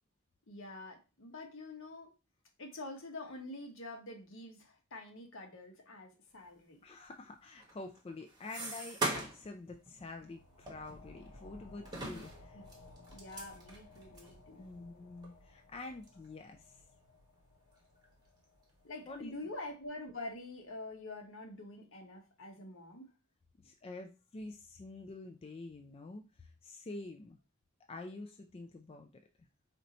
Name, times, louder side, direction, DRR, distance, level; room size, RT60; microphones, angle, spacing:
voice 1, 0.5-2.1 2.6-6.8 12.1-14.8 18.8-23.1, left 2 dB, 65° left, 2 dB, 1.2 m, -47 dB
voice 2, 6.8-12.6 14.6-16.8 19.1-19.3 23.6-27.4 27.9-29.1, left 2 dB, 30° left, 4 dB, 0.4 m, -47 dB
sound 1, 7.6-9.5 9.9-10.0 10.7-11.5 11.8-14.3 14.9-15.0 15.2-15.3 16.0-16.3 16.7-17.4 17.7-18.4, right 2 dB, 20° right, 1.2 m, -41 dB
sound 2, 9.7-20.9, left 2 dB, 90° left, 0.8 m, -59 dB
4.4 x 2.7 x 4.1 m, 0.31 s
head